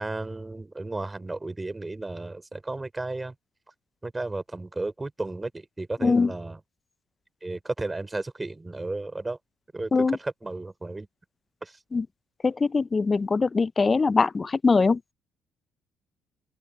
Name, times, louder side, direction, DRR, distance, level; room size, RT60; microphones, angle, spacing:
voice 1, 0.0-3.3 4.0-6.6 7.4-9.4 9.7-11.1 11.6-11.8, right 2 dB, 20° right, 3.6 m, -33 dB
voice 2, 6.0-6.3 9.9-10.2 11.9-12.1 12.4-15.0, left 4 dB, 30° left, 0.4 m, -22 dB
open air
supercardioid pair, 65°, 0 cm